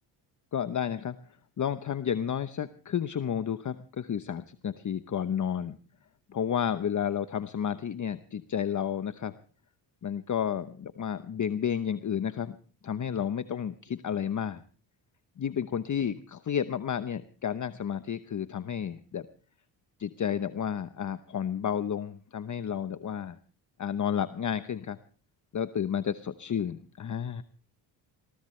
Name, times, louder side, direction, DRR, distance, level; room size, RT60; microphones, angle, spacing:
voice 1, 0.5-1.2 1.6-5.8 6.3-9.3 10.0-12.6 12.8-14.6 15.4-19.3 20.0-23.4 23.8-25.0 25.5-27.4, left 8 dB, 35° left, 12 dB, 0.9 m, -31 dB
21.0 x 17.5 x 3.2 m, 0.40 s
supercardioid pair, 70°, 48 cm